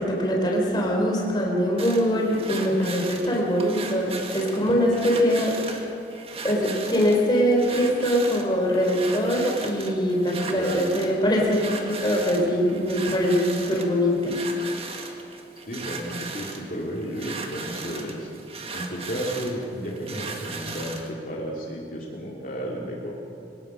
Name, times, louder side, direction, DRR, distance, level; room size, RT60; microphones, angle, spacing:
voice 1, 0.0-5.6 6.4-14.4, equal, 25° left, -1 dB, 3.6 m, -23 dB
sound 1, 1.8-21.1, right 4 dB, 35° right, 1.7 m, -37 dB
voice 2, 15.7-18.3 18.7-23.1, equal, 50° left, -3 dB, 2.8 m, -33 dB
22.5 x 19.5 x 6.3 m, 2.6 s
head